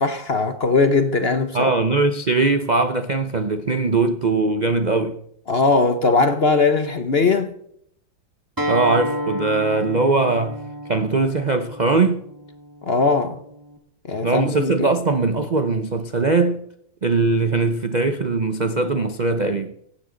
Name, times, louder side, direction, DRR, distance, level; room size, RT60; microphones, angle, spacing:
voice 1, 0.0-1.6 5.5-7.5 12.8-13.4 14.1-14.9, left 3 dB, 45° left, 0.9 m, -19 dB
voice 2, 1.5-5.2 8.7-10.6 10.9-12.2 14.2-16.6 17.0-19.7, right 3 dB, 70° right, 0.4 m, -20 dB
Acoustic guitar, 8.6-13.8, equal, 10° right, 1.6 m, -31 dB
16.5 x 16.0 x 3.9 m
omnidirectional pair, 2.1 m